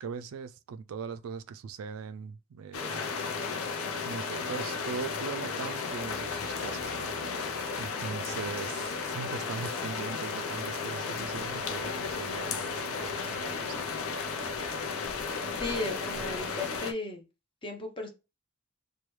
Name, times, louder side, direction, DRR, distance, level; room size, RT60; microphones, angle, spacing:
voice 1, 0.0-3.0 4.0-7.1 7.8-13.7, right 6 dB, 85° right, 0.3 m, -40 dB
sound 1, 2.7-16.9, left 5 dB, 90° left, 0.6 m, -34 dB
sound 2, 11.1-16.8, equal, 10° left, 2.4 m, -52 dB
voice 2, 15.6-17.2 17.6-18.1, left 2 dB, 25° left, 0.8 m, -35 dB
4.6 x 2.3 x 3.1 m
head